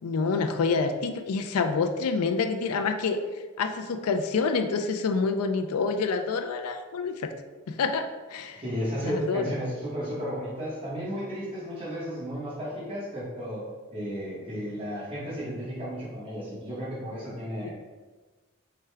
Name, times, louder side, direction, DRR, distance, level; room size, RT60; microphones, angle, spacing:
voice 1, 0.0-3.2 3.6-7.3 7.7-8.6 9.0-9.4 17.6-17.7, left 4 dB, 85° left, 7 dB, 0.4 m, -27 dB
voice 2, 8.5-17.7, equal, 25° right, -9 dB, 1.0 m, -33 dB
4.8 x 2.2 x 3.3 m, 1.3 s
head